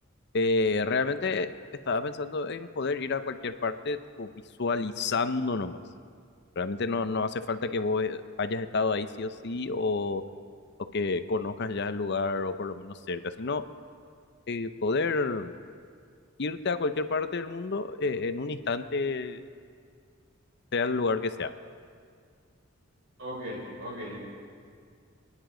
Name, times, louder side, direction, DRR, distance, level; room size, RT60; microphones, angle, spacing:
voice 1, 0.3-1.5 1.9-4.3 4.6-5.8 6.6-10.2 10.9-13.6 14.5-15.5 16.4-19.4 20.7-21.5, left 3 dB, 60° left, 10 dB, 0.7 m, -29 dB
voice 2, 23.2-24.2, equal, 70° right, -3 dB, 5.0 m, -37 dB
28.5 x 10.0 x 3.9 m, 2.1 s
head